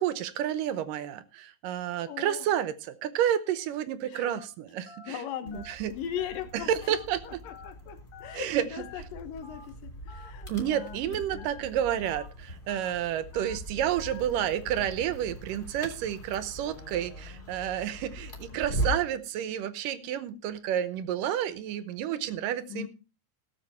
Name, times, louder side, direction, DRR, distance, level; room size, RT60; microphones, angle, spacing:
voice 1, 0.0-5.2 5.7-5.9 6.7-7.2 8.3-8.6 10.5-22.9, right 10 dB, 75° right, 13 dB, 2.5 m, -30 dB
voice 2, 2.1-2.5 4.1-4.3 5.1-7.0 7.2-11.5 16.6-17.6 22.7-22.9, left 9 dB, 80° left, 10 dB, 2.9 m, -40 dB
Telephone, 4.2-4.4 4.9-5.1 5.5-5.7 6.2-6.4 6.8-7.1 7.5-7.7 8.1-8.4 8.8-9.0 9.4-9.7 10.1-10.3 10.7-11.0 11.4-11.6 12.0-12.3 12.7-12.9 13.3-13.6 14.0-14.2, left 5 dB, 60° left, 3.0 m, -48 dB
sound 1, 5.5-19.2, right 1 dB, 15° left, 3.4 m, -40 dB
17.0 x 7.6 x 4.2 m, 0.32 s
omnidirectional pair, 3.9 m